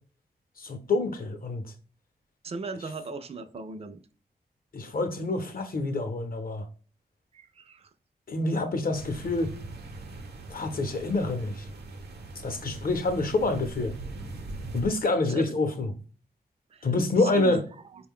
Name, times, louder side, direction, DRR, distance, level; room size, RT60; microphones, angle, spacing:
voice 1, 0.6-1.6 4.7-6.7 8.3-9.5 10.5-11.6 12.4-13.9 14.7-15.9 16.8-17.6, left 2 dB, 60° left, 0.7 m, -27 dB
voice 2, 2.4-4.0 7.3-7.9 15.3-15.5 16.7-16.9 17.2-17.6, right 3 dB, 35° right, 0.4 m, -37 dB
sound 1, 8.9-14.9, right 2 dB, 80° right, 0.7 m, -40 dB
4.3 x 2.2 x 3.6 m
cardioid pair, 65°, 17 cm